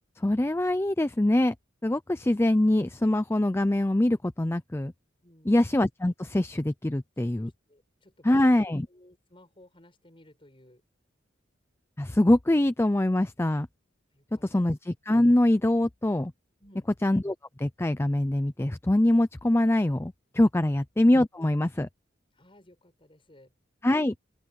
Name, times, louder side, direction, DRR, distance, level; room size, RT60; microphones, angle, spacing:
voice 1, 0.2-1.5 1.8-4.9 5.5-7.5 8.2-8.9 12.0-13.7 14.4-16.3 17.0-21.9 23.8-24.1, left 1 dB, 15° left, 0.5 m, -24 dB
voice 2, 5.2-5.6 7.4-8.6 8.9-10.8 14.1-14.7 16.6-16.9 22.3-23.5, left 1 dB, 30° left, 7.1 m, -57 dB
open air
head